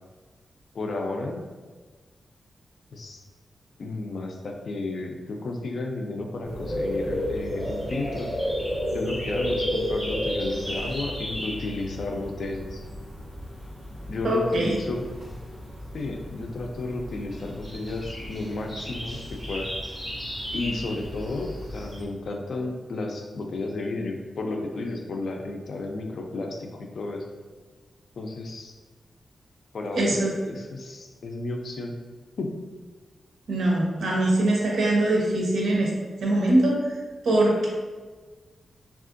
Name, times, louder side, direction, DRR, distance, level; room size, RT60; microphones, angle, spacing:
voice 1, 0.7-1.4 2.9-3.2 3.8-8.3 8.9-12.8 14.1-15.1 15.9-19.7 20.5-27.3 28.2-28.7 29.7-31.9 32.4-32.6, left 2 dB, 60° left, 3 dB, 0.4 m, -32 dB
sound 1, 6.4-22.0, equal, 5° right, 1.1 m, -33 dB
voice 2, 14.2-14.8 29.9-30.3 33.5-35.9 36.2-36.8 37.2-37.7, right 1 dB, 85° right, -2 dB, 0.7 m, -22 dB
3.5 x 2.4 x 2.5 m, 1.3 s
wide cardioid pair, 150°, 0 cm